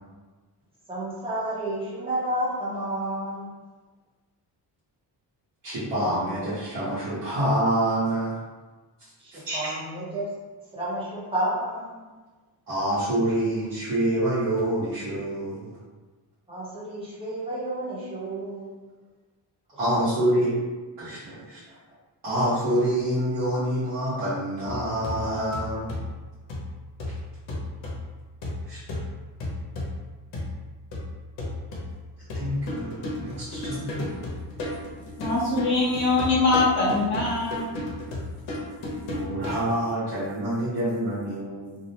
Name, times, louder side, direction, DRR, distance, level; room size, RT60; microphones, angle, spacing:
voice 1, 0.9-3.5 9.2-10.4 10.7-12.0 16.5-19.0, right 1 dB, 15° right, -9 dB, 0.7 m, -31 dB
voice 2, 5.6-8.3 9.3-9.7 12.7-15.7 19.8-20.5 21.0-21.6 22.2-25.9 28.7-29.0 32.3-34.0 39.1-41.8, right 1 dB, 65° right, -12 dB, 0.9 m, -27 dB
sound 1, 24.7-39.7, left 1 dB, 80° left, 0.8 m, -34 dB
voice 3, 35.2-37.6, left 3 dB, 30° left, -6 dB, 0.6 m, -23 dB
2.5 x 2.0 x 2.7 m, 1.3 s
wide cardioid pair, 180°, 44 cm